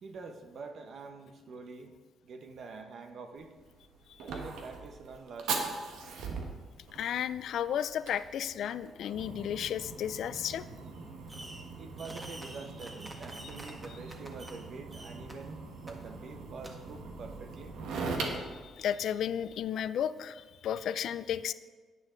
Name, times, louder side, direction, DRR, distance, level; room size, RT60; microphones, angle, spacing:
voice 1, 0.0-1.9 2.2-3.5 4.2-5.8 11.8-17.7, right 4 dB, 60° right, 6 dB, 1.1 m, -46 dB
Fire, 3.4-19.6, right 4 dB, 85° right, 1.3 m, -41 dB
voice 2, 6.9-10.6 18.4-21.5, left 9 dB, 70° left, 15 dB, 0.4 m, -33 dB
Fireworks, 11.3-11.7 12.0-14.6 14.9-15.3 15.9-16.0 16.6-16.7, right 1 dB, 20° right, 1.5 m, -47 dB
9.8 x 9.2 x 3.8 m, 1.4 s
cardioid pair, 90°, 0 cm